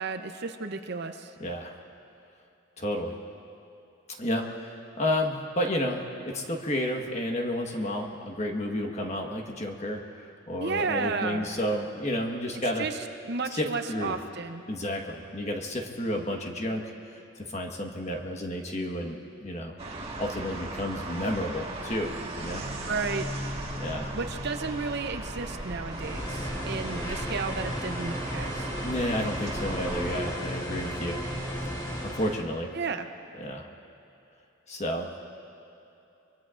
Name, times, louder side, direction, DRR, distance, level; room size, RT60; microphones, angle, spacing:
voice 1, 0.0-1.3 10.6-11.5 12.8-14.6 22.9-23.3 24.1-28.7 32.7-33.1, right 4 dB, 55° right, 7 dB, 0.7 m, -33 dB
voice 2, 1.4-1.8 2.8-3.2 4.2-12.9 13.6-14.2 14.7-16.8 17.4-19.8 20.2-22.7 23.8-24.2 28.8-31.2 32.0-32.7 33.4-33.7 34.7-35.1, left 1 dB, 35° left, 2 dB, 1.4 m, -31 dB
sound 1, 19.8-30.2, right 1 dB, 30° right, 1.6 m, -37 dB
sound 2, 25.9-32.4, equal, 20° left, 2.0 m, -34 dB
24.5 x 23.5 x 2.5 m, 2.8 s
head